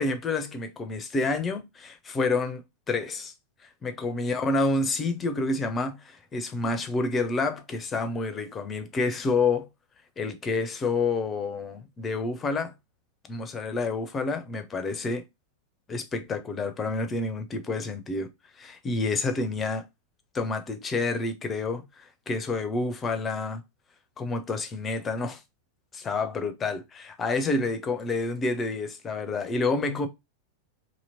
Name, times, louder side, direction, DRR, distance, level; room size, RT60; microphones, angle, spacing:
voice 1, 0.0-2.6 2.9-3.3 3.8-9.7 10.2-12.7 13.3-15.2 15.9-18.3 18.6-19.8 20.3-23.6 24.2-25.4 25.9-30.1, left 3 dB, 20° left, 0.6 m, -28 dB
2.9 x 2.8 x 2.7 m
figure-of-eight pair, 90°, 0 cm